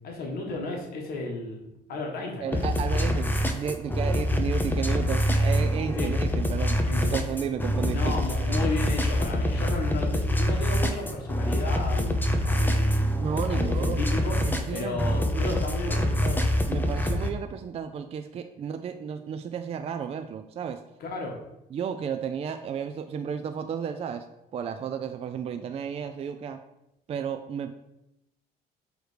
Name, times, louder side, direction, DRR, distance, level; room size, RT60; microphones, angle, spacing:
voice 1, 0.0-2.6 5.9-6.2 6.8-7.1 7.9-13.1 13.5-16.5 21.0-21.4, left 3 dB, 65° left, 0 dB, 1.3 m, -34 dB
voice 2, 2.4-3.3 3.5-8.2 8.6-8.7 13.2-14.0 14.5-15.4 16.7-20.8 21.7-24.2 24.5-26.6 27.1-27.7, right 7 dB, 35° right, 7 dB, 0.4 m, -33 dB
sound 1, 2.5-17.3, equal, 10° left, 0.6 m, -25 dB
6.4 x 3.1 x 4.9 m, 0.88 s
cardioid pair, 110°, 17 cm